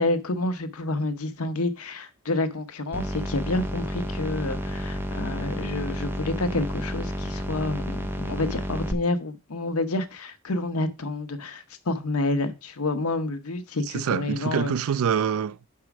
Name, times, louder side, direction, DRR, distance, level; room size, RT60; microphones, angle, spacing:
voice 1, 0.0-14.7, left 2 dB, 80° left, 0.9 m, -29 dB
sound 1, 2.9-8.9, equal, 10° right, 0.7 m, -31 dB
voice 2, 13.8-15.7, right 7 dB, 70° right, 0.3 m, -26 dB
6.0 x 4.7 x 5.9 m
head